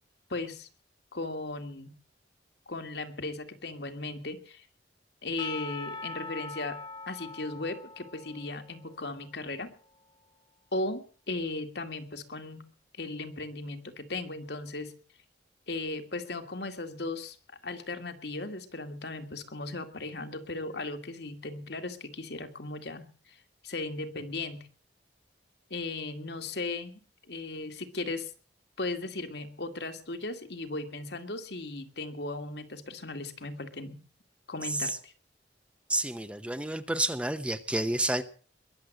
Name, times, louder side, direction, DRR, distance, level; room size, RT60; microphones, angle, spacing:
voice 1, 0.3-0.7 1.1-1.9 2.7-4.7 5.2-9.7 10.7-12.7 13.0-15.0 15.7-17.4 17.6-24.7 25.7-27.0 27.3-28.3 28.8-34.0 34.5-35.1, left 2 dB, 65° left, 6 dB, 2.0 m, -37 dB
Percussion / Church bell, 5.4-9.7, left 3 dB, 25° left, 1.0 m, -43 dB
voice 2, 35.9-38.2, right 1 dB, 5° right, 11 dB, 0.8 m, -30 dB
21.5 x 7.8 x 7.7 m, 0.42 s
head